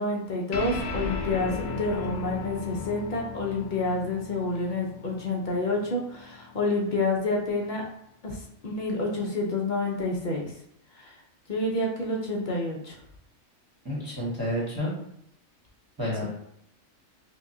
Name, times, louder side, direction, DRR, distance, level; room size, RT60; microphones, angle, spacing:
voice 1, 0.0-7.8 8.2-8.4 8.6-10.5 11.0-11.1 11.5-12.9, left 2 dB, 50° left, -1 dB, 0.6 m, -28 dB
sound 1, 0.5-7.3, left 4 dB, 70° left, 0.9 m, -36 dB
voice 2, 13.8-14.9 16.0-16.2, left 1 dB, 20° right, -7 dB, 1.0 m, -29 dB
5.3 x 2.2 x 2.7 m, 0.73 s
omnidirectional pair, 1.4 m